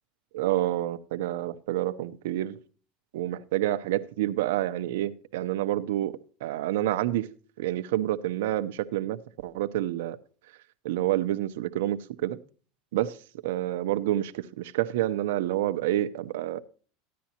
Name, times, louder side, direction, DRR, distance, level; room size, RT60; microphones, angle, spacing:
voice 1, 0.3-2.6 3.1-7.3 7.6-10.2 10.8-12.4 12.9-13.2 13.4-16.6, right 14 dB, 85° right, 0.7 m, -28 dB
14.5 x 10.5 x 2.9 m
supercardioid pair, 135°, 0 cm